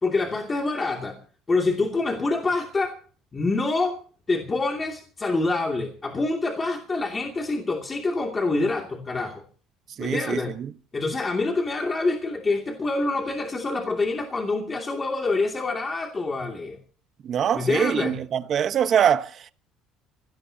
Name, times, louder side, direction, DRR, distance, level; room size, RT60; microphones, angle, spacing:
voice 1, 0.0-1.2 1.5-2.9 3.3-4.0 4.3-9.4 10.0-10.5 10.9-16.8 17.5-18.2, left 3 dB, 20° left, 2.6 m, -26 dB
voice 2, 10.0-10.7 17.2-19.5, right 8 dB, 40° right, 1.1 m, -24 dB
25.5 x 17.5 x 2.9 m
cardioid pair, 140°, 0 cm